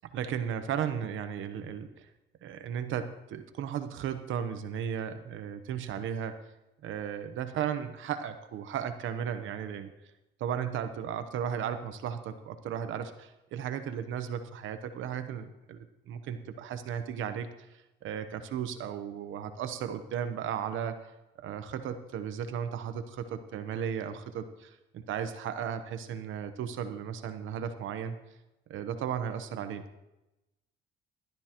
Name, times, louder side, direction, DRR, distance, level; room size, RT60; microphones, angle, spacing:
voice 1, 0.0-2.1 2.4-6.4 6.8-9.9 10.4-21.1 21.4-28.2 28.7-29.8, right 8 dB, 80° right, 9 dB, 0.9 m, -35 dB
16.0 x 12.5 x 3.0 m, 0.95 s
cardioid pair, 90°, 20 cm